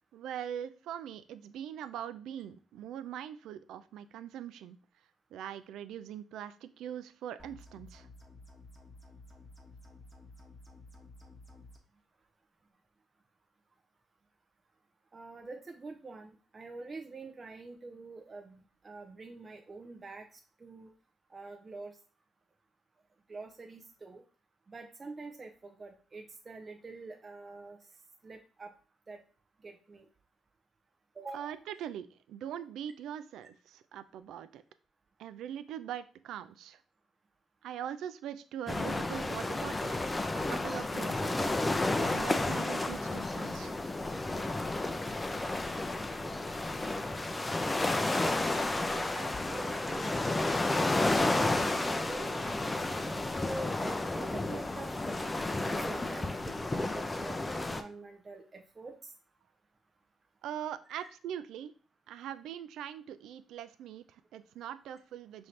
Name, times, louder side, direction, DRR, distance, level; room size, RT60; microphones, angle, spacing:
voice 1, 0.1-4.8 5.3-8.1 31.3-34.6 35.2-36.8 37.6-40.0 40.3-41.5 42.0-43.8 60.4-61.7 62.1-65.5, right 10 dB, 80° right, 13 dB, 0.3 m, -42 dB
sound 1, 7.4-11.8, left 2 dB, 5° right, 1.1 m, -53 dB
voice 2, 15.1-20.9 21.3-21.9 23.3-24.2 24.7-27.8 28.2-28.7 29.1-29.2 29.6-30.0 31.2-31.6 48.7-50.2 50.5-55.2 55.6-56.4 56.7-59.1 60.9-61.1, right 3 dB, 30° right, 3 dB, 0.5 m, -46 dB
sound 2, 38.7-57.8, left 2 dB, 20° left, 0.5 m, -32 dB
5.5 x 2.6 x 3.2 m, 0.38 s
cardioid pair, 90°, 0 cm